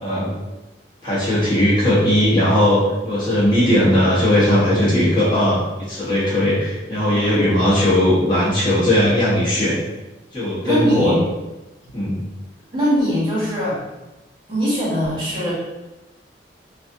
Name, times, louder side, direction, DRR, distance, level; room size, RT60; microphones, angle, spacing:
voice 1, 1.0-5.6 5.9-9.8 10.3-11.2 11.9-12.2, left 1 dB, 25° left, -10 dB, 0.9 m, -18 dB
voice 2, 7.1-7.4 10.6-11.2 12.7-13.8 14.5-15.5, equal, 30° right, -9 dB, 1.4 m, -21 dB
3.1 x 2.5 x 2.6 m, 1.0 s
head